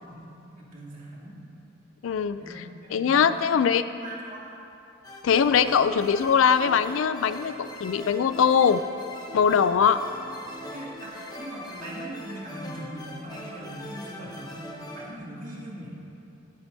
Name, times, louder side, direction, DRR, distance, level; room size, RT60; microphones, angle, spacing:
voice 1, 0.0-1.4 2.4-3.7 4.0-4.4 9.8-9.9 10.7-16.0, right 1 dB, 40° right, -6 dB, 2.5 m, -41 dB
voice 2, 2.0-2.6 2.9-3.8 5.2-8.8 9.3-10.0, left 7 dB, 75° left, 12 dB, 0.4 m, -21 dB
sound 1, 5.0-15.1, equal, 20° left, 0.8 m, -41 dB
22.5 x 8.0 x 2.7 m, 2.7 s
head